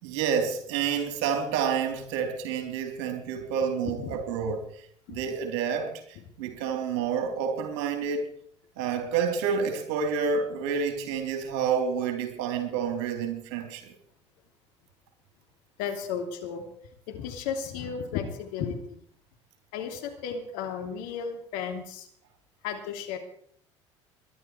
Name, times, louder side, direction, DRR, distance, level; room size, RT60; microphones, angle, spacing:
voice 1, 0.0-4.7 5.1-5.9 6.4-8.3 8.8-13.9, right 6 dB, 65° right, 4 dB, 3.9 m, -29 dB
voice 2, 3.8-4.2 5.1-5.2 15.8-16.7 17.1-19.0 19.7-22.1 22.6-23.2, left 7 dB, 65° left, 4 dB, 3.0 m, -34 dB
22.0 x 11.5 x 4.7 m, 0.62 s
figure-of-eight pair, 65°, 15 cm